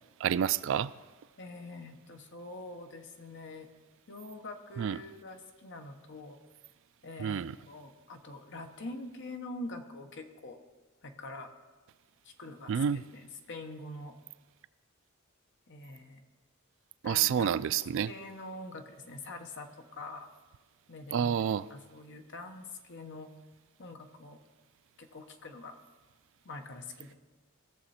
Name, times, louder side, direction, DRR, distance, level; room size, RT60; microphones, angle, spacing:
voice 1, 0.2-0.9 4.8-5.0 7.2-7.5 12.7-13.0 17.0-18.1 21.1-21.7, right 8 dB, 65° right, 17 dB, 0.3 m, -28 dB
voice 2, 1.4-3.7 4.1-6.4 7.0-10.6 11.0-11.5 12.2-14.1 15.7-16.2 17.0-17.7 18.0-20.3 20.9-21.4 21.7-23.3 23.8-24.4 25.0-25.8 26.4-27.1, left 2 dB, 60° left, 5 dB, 1.1 m, -45 dB
17.5 x 6.8 x 4.2 m, 1.3 s
head